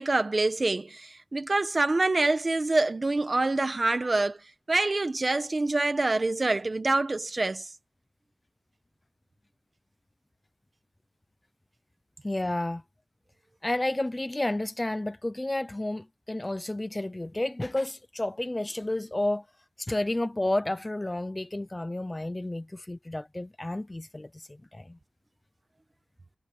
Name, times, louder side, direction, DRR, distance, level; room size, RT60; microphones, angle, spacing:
voice 1, 0.0-4.4 4.7-7.7, right 2 dB, 30° right, 1.5 m, -26 dB
voice 2, 12.2-12.8 13.6-19.4 19.8-25.0, left 1 dB, 15° left, 0.6 m, -31 dB
wide cardioid pair, 145°, 0 cm